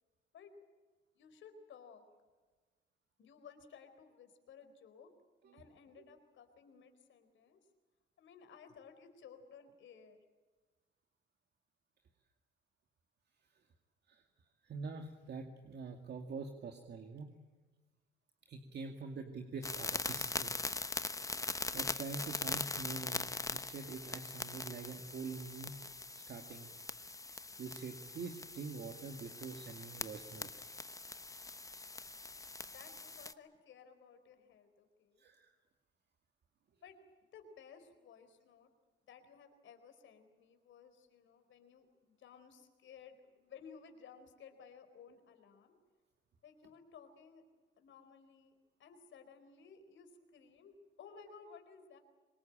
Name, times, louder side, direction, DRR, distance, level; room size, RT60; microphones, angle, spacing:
voice 1, 1.1-2.0 3.2-5.1 5.5-7.6 8.2-10.2 32.7-35.2 36.8-38.7 39.1-45.7 46.4-47.4 47.8-48.5 48.8-52.0, left 6 dB, 75° left, 8 dB, 4.4 m, -57 dB
voice 2, 14.6-17.3 18.5-20.5 21.7-25.8 26.1-26.7 27.6-30.5 35.2-35.5, right 4 dB, 60° right, 5 dB, 2.3 m, -45 dB
sound 1, 19.6-33.3, left 3 dB, 15° left, 1.1 m, -42 dB
25.5 x 21.0 x 8.9 m, 1.3 s
cardioid pair, 90°, 20 cm